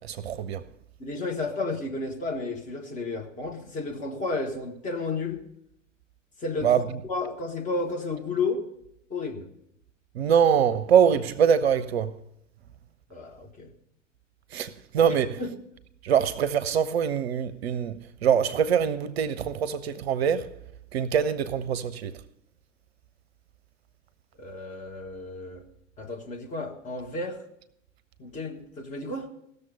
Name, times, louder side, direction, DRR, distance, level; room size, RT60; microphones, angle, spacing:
voice 1, 0.0-0.6 6.6-6.8 10.2-12.1 14.5-15.4 16.0-17.9 18.2-20.5 20.9-22.1, right 8 dB, 55° right, 0.6 m, -23 dB
voice 2, 1.0-5.4 6.4-8.7 9.1-9.5 13.1-13.7 15.4-15.5 24.4-25.6 26.0-27.4 28.2-29.3, left 3 dB, 20° left, 1.4 m, -32 dB
17.0 x 6.8 x 5.4 m
figure-of-eight pair, 95°, 38 cm